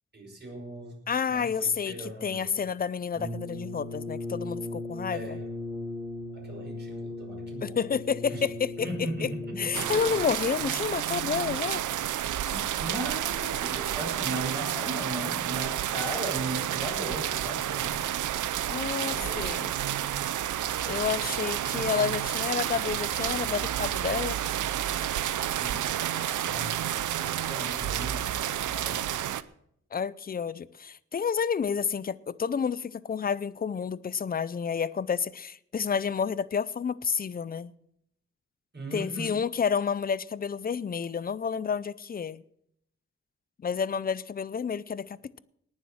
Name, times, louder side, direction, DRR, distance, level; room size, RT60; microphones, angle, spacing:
voice 1, 0.1-1.0 1.3-2.5 5.1-5.4 6.3-7.8 8.3-8.4 8.8-10.0 12.5-18.0 19.0-19.6 25.6-26.8 27.2-28.4 28.7-29.2 38.7-39.4, right 1 dB, 35° right, 5.6 m, -38 dB
voice 2, 1.1-5.4 7.6-8.9 9.2-9.3 9.6-11.8 18.7-19.7 20.9-24.4 29.9-37.7 38.9-42.4 43.6-45.4, left 6 dB, 30° left, 0.5 m, -30 dB
Brass instrument, 3.1-10.3, left 2 dB, 20° right, 5.8 m, -37 dB
sound 1, 9.7-29.4, right 11 dB, 90° right, 0.6 m, -30 dB
19.0 x 7.4 x 6.3 m
wide cardioid pair, 130°, 30 cm